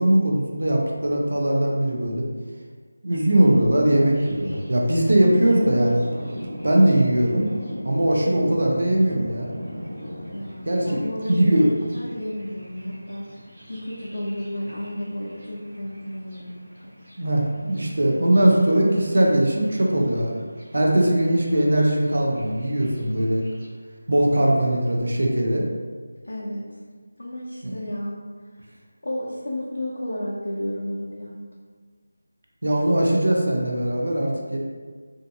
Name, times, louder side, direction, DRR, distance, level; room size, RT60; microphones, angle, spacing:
voice 1, 0.0-2.2 3.0-6.0 6.6-7.5 7.8-9.5 10.7-11.7 17.2-20.3 20.7-23.5 24.1-25.7 27.6-27.7 32.6-34.6, right 1 dB, 65° right, -1 dB, 0.6 m, -20 dB
Thunder, 4.1-23.7, equal, 20° right, 0.6 m, -40 dB
voice 2, 5.4-5.8 10.3-13.3 13.7-16.9 26.2-26.8 27.2-28.2 29.0-31.4, left 1 dB, 85° left, -5 dB, 0.5 m, -32 dB
2.6 x 2.4 x 2.6 m, 1.5 s
figure-of-eight pair, 180°, 0 cm